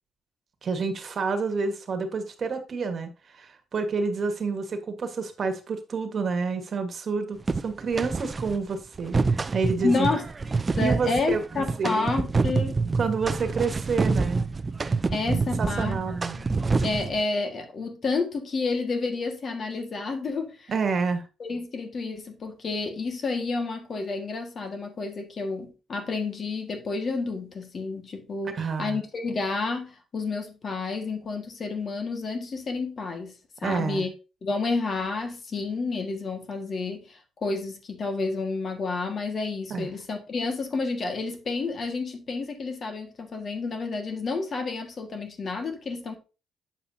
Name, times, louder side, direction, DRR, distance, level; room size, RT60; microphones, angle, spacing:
voice 1, 0.6-10.1 10.8-12.1 13.0-14.4 15.6-16.4 20.7-21.2 28.5-29.0 33.6-34.1 39.7-39.9, right 4 dB, 50° right, 1.5 m, -29 dB
sound 1, 7.5-8.6 8.9-17.2, right 4 dB, 30° right, 0.5 m, -27 dB
voice 2, 9.8-10.3 10.8-12.8 15.1-16.0 16.4-16.5 16.8-20.7 21.4-33.3 33.6-34.1 34.4-46.2, left 3 dB, 50° left, 1.8 m, -30 dB
8.3 x 6.9 x 2.8 m
cardioid pair, 80°, 0 cm